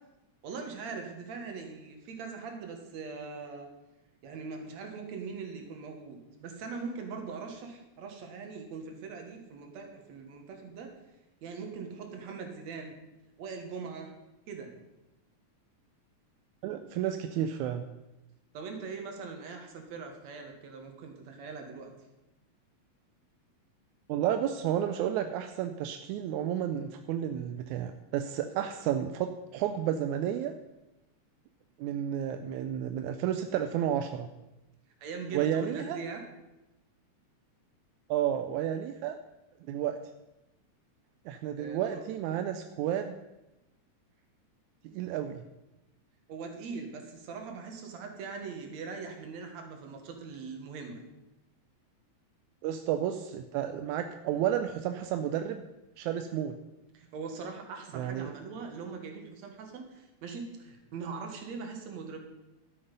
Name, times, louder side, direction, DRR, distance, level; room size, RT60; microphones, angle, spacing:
voice 1, 0.4-3.7 4.2-10.9 11.4-13.0 13.4-14.1 14.5-14.7 18.5-21.9 35.0-36.2 41.6-42.0 46.3-51.0 56.9-62.2, right 5 dB, 70° right, 4 dB, 2.7 m, -41 dB
voice 2, 16.6-17.8 24.1-30.5 31.8-34.3 35.3-36.0 38.1-39.2 39.7-40.0 41.3-43.2 44.8-45.5 52.6-55.6 56.0-56.6 57.9-58.3, right 10 dB, 85° right, 7 dB, 2.0 m, -31 dB
12.5 x 8.0 x 5.4 m, 0.98 s
omnidirectional pair, 3.3 m